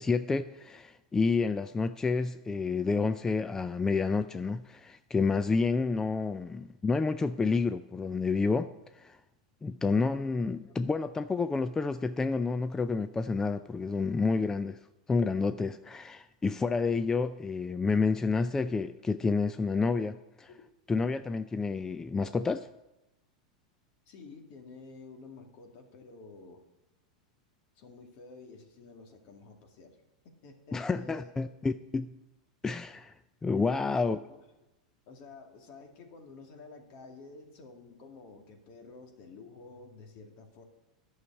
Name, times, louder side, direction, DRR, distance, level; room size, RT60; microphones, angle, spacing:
voice 1, 0.0-9.2 9.6-14.8 15.1-20.5 20.9-22.7 30.7-32.1 32.6-33.1 33.4-34.2, left 4 dB, 15° left, 12 dB, 0.4 m, -29 dB
voice 2, 24.1-26.6 27.8-30.0 30.2-31.4 33.5-34.5 35.1-40.6, left 3 dB, 55° left, 3 dB, 2.2 m, -51 dB
11.0 x 6.4 x 8.1 m, 0.96 s
hypercardioid pair, 105°, 4 cm